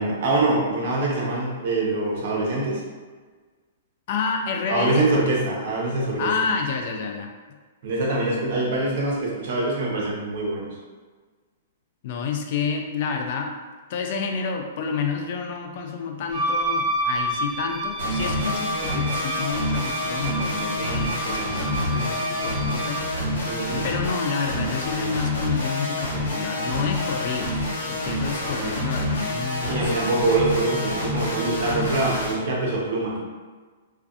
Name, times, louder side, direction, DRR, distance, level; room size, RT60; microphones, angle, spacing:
voice 1, 0.0-2.8 4.7-6.3 7.8-10.7 23.5-23.9 29.7-33.2, right 2 dB, 55° right, -4 dB, 0.8 m, -24 dB
voice 2, 4.1-5.1 6.2-7.3 12.0-13.5 13.9-23.0 23.8-30.0, left 5 dB, 50° left, 3 dB, 0.3 m, -29 dB
Wind instrument woodwind instrument, 16.3-23.1, right 1 dB, 25° right, 0.4 m, -29 dB
sound 1, 18.0-32.3, left 1 dB, 80° left, 1.0 m, -27 dB
2.5 x 2.2 x 2.4 m, 1.4 s
hypercardioid pair, 155°, 0 cm